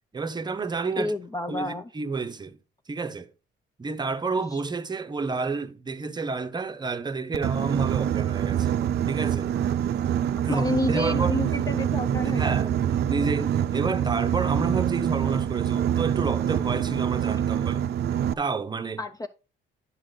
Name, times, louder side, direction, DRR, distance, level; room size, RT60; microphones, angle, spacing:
voice 1, 0.1-1.1 1.5-2.6 2.9-3.3 3.8-8.8 9.1-9.6 10.4-11.4 12.3-17.9 18.4-19.0, right 4 dB, 20° right, 0.7 m, -30 dB
voice 2, 1.0-1.9 4.5-4.6 10.5-12.7 19.0-19.3, left 2 dB, 15° left, 0.5 m, -30 dB
Boat Water vehicle, 7.3-18.3, right 10 dB, 55° right, 0.5 m, -25 dB
9.7 x 6.6 x 3.9 m
cardioid pair, 135°, 20 cm